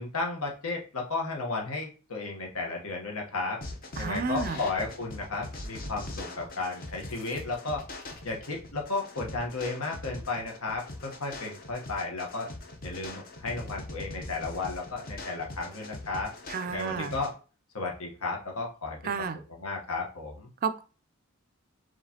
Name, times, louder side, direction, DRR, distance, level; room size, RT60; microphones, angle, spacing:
voice 1, 0.0-3.6 4.0-7.8 8.2-12.5 12.8-16.3 16.6-17.3 17.7-20.5, left 3 dB, 80° left, 0 dB, 1.2 m, -34 dB
sound 1, 3.6-17.3, left 2 dB, 40° left, 0.8 m, -42 dB
voice 2, 4.0-4.6 16.5-17.1 19.0-19.4 20.6-20.8, right 5 dB, 40° right, 11 dB, 0.3 m, -31 dB
4.8 x 3.1 x 2.9 m, 0.36 s
head